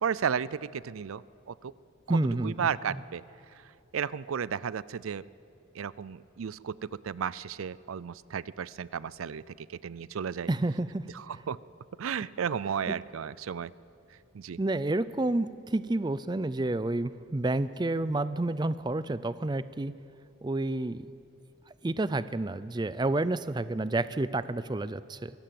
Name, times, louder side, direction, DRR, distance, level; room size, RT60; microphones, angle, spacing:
voice 1, 0.0-1.7 2.1-2.2 2.4-3.2 3.9-5.2 5.7-10.5 11.1-11.6 12.0-13.7 14.3-14.6, right 7 dB, 85° right, 20 dB, 0.4 m, -33 dB
voice 2, 2.1-2.5 10.5-11.0 12.9-13.0 14.6-19.9 20.4-21.1 21.8-25.3, right 2 dB, 20° right, 15 dB, 0.4 m, -29 dB
23.5 x 16.0 x 7.7 m, 2.7 s
head